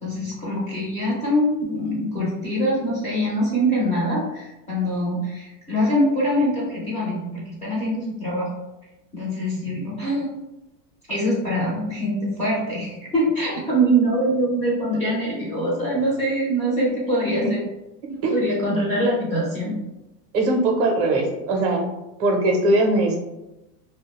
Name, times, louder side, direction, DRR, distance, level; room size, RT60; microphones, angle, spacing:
voice 1, 0.0-8.5 9.1-10.3 11.1-17.6 18.1-19.7, equal, 15° left, -6 dB, 0.4 m, -23 dB
voice 2, 20.3-21.9 22.2-23.2, right 2 dB, 30° right, 2 dB, 0.5 m, -20 dB
2.3 x 2.1 x 2.9 m, 0.96 s
supercardioid pair, 140°, 47 cm